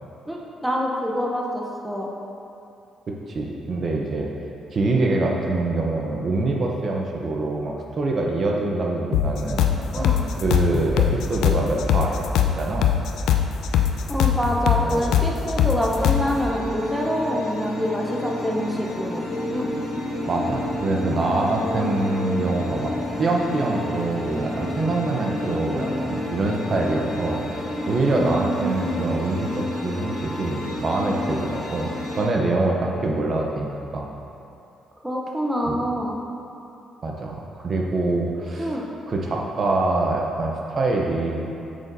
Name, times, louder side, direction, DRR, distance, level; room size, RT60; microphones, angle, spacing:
voice 1, 0.3-2.1 9.9-10.2 14.1-19.2 19.5-19.7 28.1-29.1 35.0-36.2 38.6-38.8, equal, 5° right, -2 dB, 0.8 m, -26 dB
voice 2, 3.3-4.3 4.7-12.9 14.8-15.0 20.3-22.9 23.2-34.1 35.7-35.8 37.0-38.7 39.1-41.5, right 2 dB, 45° right, 0 dB, 0.7 m, -25 dB
sound 1, 9.1-16.3, left 9 dB, 85° left, 0.4 m, -21 dB
sound 2, 15.9-32.2, left 1 dB, 55° left, 1.2 m, -30 dB
7.5 x 5.7 x 2.6 m, 2.7 s
cardioid pair, 90°, 0 cm